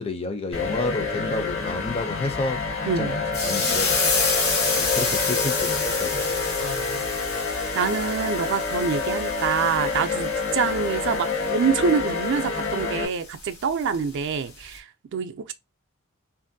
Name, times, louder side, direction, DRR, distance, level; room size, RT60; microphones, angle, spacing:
voice 1, 0.0-4.0 4.8-6.4, left 2 dB, 30° left, 0.4 m, -30 dB
sound 1, 0.5-13.0, left 4 dB, 60° left, 0.9 m, -28 dB
voice 2, 2.8-3.2 6.6-7.0 7.7-15.5, right 6 dB, 60° right, 0.4 m, -26 dB
sound 2, 3.3-14.2 14.6-14.8, left 3 dB, 90° left, 1.0 m, -29 dB
2.9 x 2.5 x 2.6 m
head